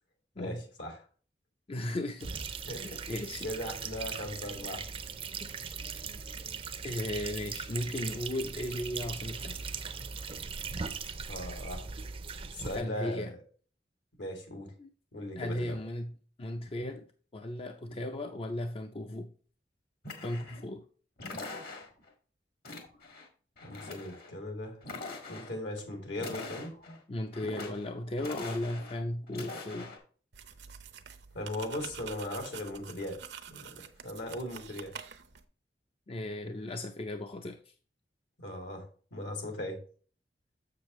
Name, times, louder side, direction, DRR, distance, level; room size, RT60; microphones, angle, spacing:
voice 1, 0.4-1.0 2.7-2.8 3.4-4.8 11.3-11.8 12.5-13.3 14.2-14.7 15.1-15.8 23.6-24.8 25.3-26.9 31.3-33.2 33.5-34.9 38.4-38.8 39.1-39.8, left 1 dB, 75° left, 2.6 m, -38 dB
voice 2, 1.7-2.4 2.8-3.5 5.8-6.0 6.8-9.6 12.7-13.3 14.8-14.9 15.4-17.0 17.3-19.3 20.2-20.8 27.1-30.0 36.1-37.7, left 1 dB, 35° left, 0.5 m, -36 dB
sound 1, 2.2-12.8, right 5 dB, 35° right, 0.5 m, -39 dB
sound 2, 20.0-20.7 21.2-22.1 22.6-23.3 23.6-24.3 24.8-25.6 26.1-27.0 27.3-27.9 28.2-29.0 29.3-30.0, left 3 dB, 60° left, 1.8 m, -43 dB
sound 3, 30.3-35.4, right 7 dB, 70° right, 0.7 m, -47 dB
7.1 x 6.8 x 3.1 m
head